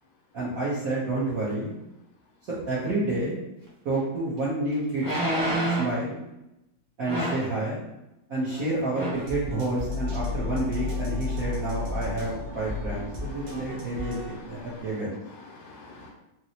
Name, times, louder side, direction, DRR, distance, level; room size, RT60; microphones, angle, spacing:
voice 1, 0.3-1.7 2.7-3.4 3.8-5.1 5.6-6.2 7.0-7.8 8.3-15.2, right 2 dB, 60° right, -8 dB, 0.9 m, -29 dB
sound 1, 3.9-4.0 5.0-6.0 7.0-7.5 8.5-8.6 8.9-9.3 9.8-9.9, right 1 dB, 25° right, 0.4 m, -28 dB
sound 2, 9.1-14.3, left 2 dB, 80° right, 0.6 m, -38 dB
sound 3, 9.8-14.9, left 4 dB, 70° left, 0.4 m, -34 dB
voice 2, 12.9-15.0 15.3-16.1, left 3 dB, 85° left, -1 dB, 1.4 m, -48 dB
4.2 x 2.0 x 2.7 m, 0.92 s
omnidirectional pair, 2.2 m